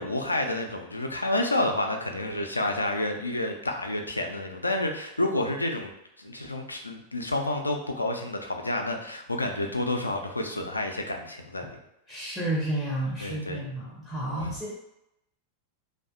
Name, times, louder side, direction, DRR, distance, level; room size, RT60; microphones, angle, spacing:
voice 1, 0.0-5.9 6.2-11.8 13.2-13.6 14.4-14.6, left 1 dB, 80° left, 4 dB, 0.3 m, -29 dB
voice 2, 12.1-14.7, right 1 dB, 10° left, -4 dB, 0.5 m, -31 dB
2.6 x 2.1 x 2.3 m, 0.85 s
figure-of-eight pair, 90°, 0 cm